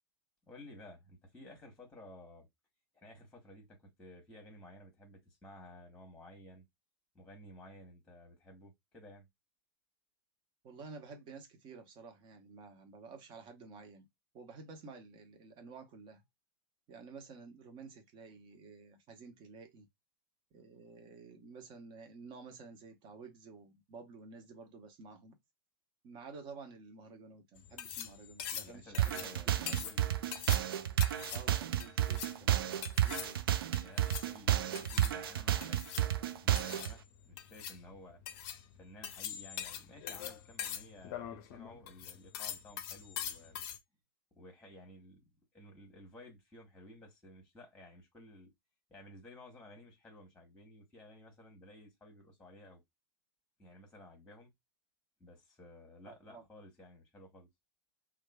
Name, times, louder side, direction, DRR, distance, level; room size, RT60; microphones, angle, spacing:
voice 1, 0.5-2.5 2.9-6.6 7.1-9.3 28.6-30.2 33.7-38.2 38.8-43.6 44.3-45.2 45.5-48.5 48.9-52.8 53.6-54.5 55.2-57.5, left 1 dB, 5° left, 1.2 m, -55 dB
voice 2, 10.6-14.1 14.3-16.2 16.9-19.9 20.5-25.4 26.0-29.8 31.3-33.4 34.1-34.2 56.1-56.5, right 4 dB, 35° right, 0.9 m, -52 dB
sound 1, 27.6-43.8, left 9 dB, 45° left, 0.5 m, -44 dB
sound 2, 29.0-36.9, right 11 dB, 65° right, 0.4 m, -31 dB
2.9 x 2.3 x 2.3 m
figure-of-eight pair, 95°, 13 cm